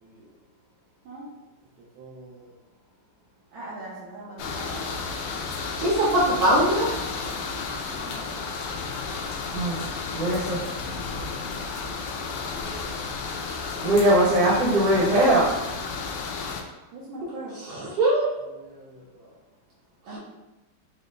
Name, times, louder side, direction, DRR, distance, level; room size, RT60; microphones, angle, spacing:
voice 1, 1.8-2.5 3.5-4.9 7.9-8.4 13.7-14.2 15.0-15.1 16.2-16.4 16.9-17.8 18.5-19.4 20.1-20.2, right 2 dB, 75° right, -6 dB, 1.5 m, -42 dB
sound 1, 4.4-16.6, left 4 dB, 75° left, 1.1 m, -32 dB
voice 2, 5.8-6.9 17.5-18.3 20.1-20.2, right 1 dB, 90° right, -8 dB, 2.6 m, -22 dB
voice 3, 10.1-10.6 13.8-15.5, right 1 dB, 45° right, -5 dB, 1.4 m, -20 dB
5.4 x 2.0 x 3.7 m, 1.0 s
omnidirectional pair, 2.2 m